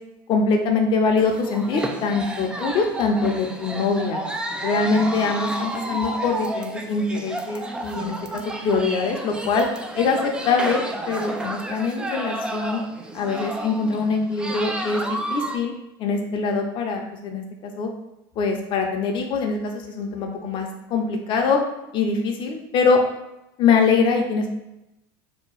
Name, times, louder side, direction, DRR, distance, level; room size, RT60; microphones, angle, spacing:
voice 1, 0.3-4.2 4.6-8.2 8.6-9.7 9.9-12.8 13.1-15.7 16.0-17.9 18.4-21.6 21.9-23.0 23.6-24.5, left 4 dB, 50° left, 3 dB, 0.6 m, -23 dB
sound 1, 1.2-15.6, right 1 dB, 10° right, 0.3 m, -31 dB
2.8 x 2.2 x 4.0 m, 0.90 s
supercardioid pair, 110°, 11 cm